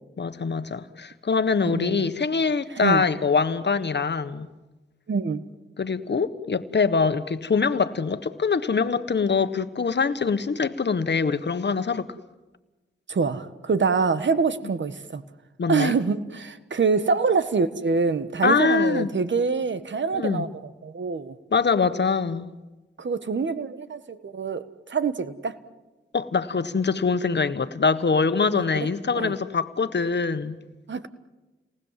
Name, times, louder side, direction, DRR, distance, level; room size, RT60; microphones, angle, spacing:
voice 1, 0.2-4.5 5.8-12.1 15.6-16.0 18.4-19.1 20.1-20.5 21.5-22.5 26.1-30.6, left 5 dB, 55° left, 11 dB, 1.5 m, -24 dB
voice 2, 1.6-2.1 2.8-3.0 5.1-5.4 13.1-15.2 15.7-21.3 23.0-25.6 28.5-28.9 29.1-29.3 30.9-31.1, right 4 dB, 60° right, 12 dB, 1.6 m, -25 dB
29.5 x 19.5 x 7.6 m, 1.1 s
cardioid pair, 55°, 21 cm